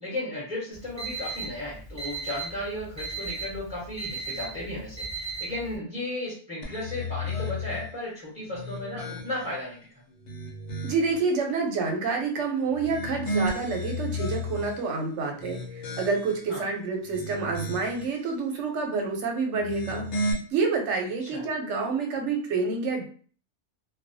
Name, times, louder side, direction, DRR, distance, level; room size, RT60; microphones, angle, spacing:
voice 1, 0.0-9.8 16.5-16.7 21.2-21.4, left 1 dB, 5° right, -6 dB, 0.9 m, -35 dB
Alarm, 0.7-5.7, right 4 dB, 30° right, 0.6 m, -36 dB
sound 1, 6.6-7.9 8.5-9.6 10.1-11.2 12.7-14.8 15.3-16.5 17.0-18.1 19.5-20.3, left 1 dB, 80° left, 0.9 m, -33 dB
voice 2, 10.8-23.0, right 4 dB, 85° right, 2 dB, 0.9 m, -28 dB
2.3 x 2.1 x 2.6 m, 0.43 s
omnidirectional pair, 1.2 m